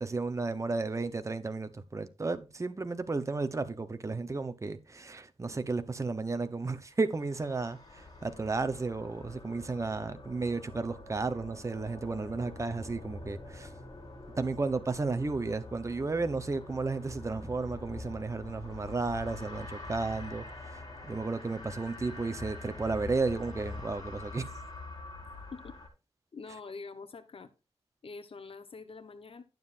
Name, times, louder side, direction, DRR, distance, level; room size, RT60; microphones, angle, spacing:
voice 1, 0.0-13.7 14.4-24.5, right 3 dB, 30° right, 1.0 m, -33 dB
sound 1, 6.9-25.9, left 2 dB, 35° left, 5.1 m, -45 dB
voice 2, 26.3-27.5 28.0-29.4, left 4 dB, 60° left, 1.1 m, -45 dB
12.0 x 7.3 x 2.6 m
wide cardioid pair, 110°, 11 cm